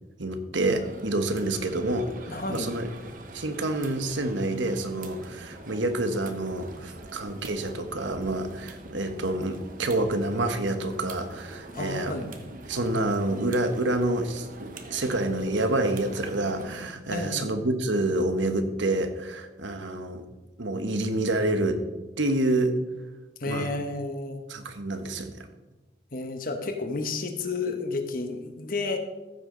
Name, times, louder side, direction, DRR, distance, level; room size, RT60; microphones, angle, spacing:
voice 1, 0.2-2.9 3.3-12.2 12.7-20.2 20.6-21.8 22.2-22.8 23.5-23.7 24.5-25.4, right 2 dB, 80° right, 7 dB, 1.2 m, -28 dB
sound 1, 0.6-16.9, right 2 dB, 45° right, 1.0 m, -44 dB
voice 2, 2.3-2.7 11.7-12.3 17.1-17.5 23.4-24.4 26.1-29.0, left 3 dB, 50° left, 6 dB, 1.1 m, -31 dB
14.5 x 8.2 x 3.9 m, 1.1 s
head